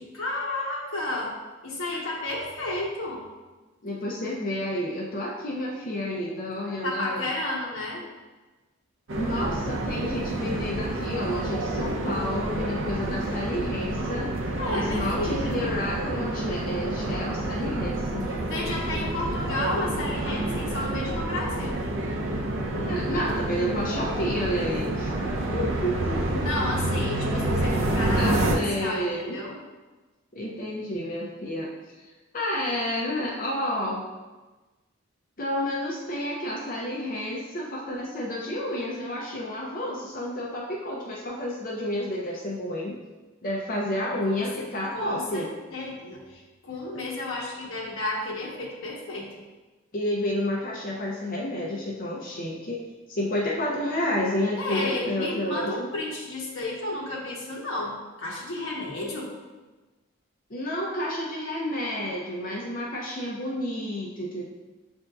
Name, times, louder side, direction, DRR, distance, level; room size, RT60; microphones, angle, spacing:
voice 1, 0.0-1.4 1.6-3.2 6.8-8.0 14.6-15.6 18.4-21.8 26.4-28.5 28.8-29.6 44.3-44.5 44.9-49.3 54.6-59.3, left 2 dB, 70° left, -4 dB, 1.1 m, -32 dB
voice 2, 3.8-7.3 9.2-14.3 14.7-18.3 22.7-25.1 25.5-26.4 28.1-29.4 30.3-31.7 32.3-34.1 35.4-43.0 43.4-45.5 49.9-52.8 53.1-55.9 60.5-64.4, left 1 dB, 40° left, -3 dB, 0.5 m, -30 dB
sound 1, 9.1-28.6, right 1 dB, 65° right, 0.5 m, -28 dB
7.5 x 2.6 x 2.3 m, 1.2 s
head